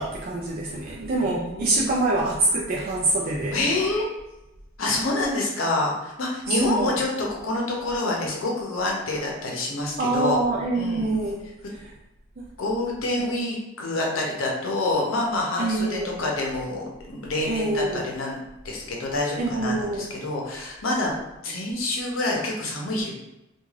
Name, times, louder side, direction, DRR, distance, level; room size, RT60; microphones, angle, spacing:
voice 1, 0.0-3.6 6.5-6.9 10.0-11.4 12.4-12.5 13.2-13.3 15.6-16.2 17.5-18.0 19.4-20.1, right 2 dB, 45° right, -4 dB, 0.3 m, -25 dB
voice 2, 1.2-2.2 3.5-4.1 4.8-10.4 10.7-11.1 12.6-18.4 18.6-21.1 21.4-23.1, left 2 dB, 85° left, -1 dB, 0.7 m, -27 dB
2.4 x 2.3 x 3.1 m, 0.95 s
head